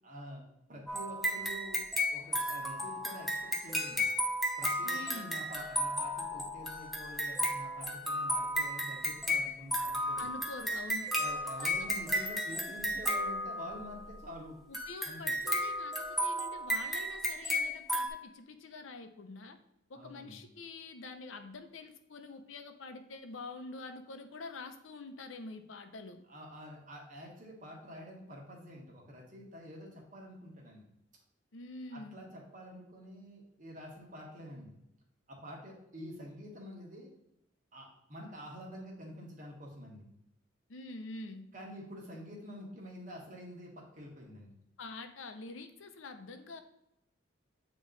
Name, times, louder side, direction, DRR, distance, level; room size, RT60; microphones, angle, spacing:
voice 1, 0.0-0.4 0.7-1.8 2.1-4.1 4.6-10.3 11.1-14.6 15.0-15.3 19.9-20.4 26.3-30.8 31.9-34.7 35.3-37.1 37.7-40.1 41.5-44.5, equal, 40° right, -1 dB, 1.4 m, -47 dB
sound 1, 0.9-14.0 14.7-18.1, equal, ahead, 0.7 m, -34 dB
voice 2, 4.8-5.4 10.2-11.1 11.6-11.7 14.7-19.6 19.9-26.2 31.5-32.3 40.7-41.5 44.8-46.6, left 3 dB, 80° left, 8 dB, 0.7 m, -46 dB
8.2 x 3.0 x 3.9 m, 0.84 s
head